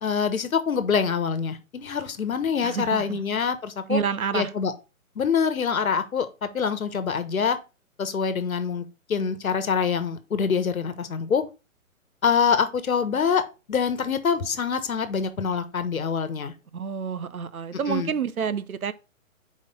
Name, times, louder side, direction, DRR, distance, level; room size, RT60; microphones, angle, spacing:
voice 1, 0.0-4.0 4.3-4.7 5.1-7.6 8.0-11.4 12.2-16.5 17.9-18.1, left 6 dB, 80° left, 1.2 m, -25 dB
voice 2, 2.6-3.2 3.9-4.5 16.7-18.9, right 7 dB, 85° right, 0.8 m, -28 dB
4.7 x 4.3 x 5.5 m
figure-of-eight pair, 135°, 41 cm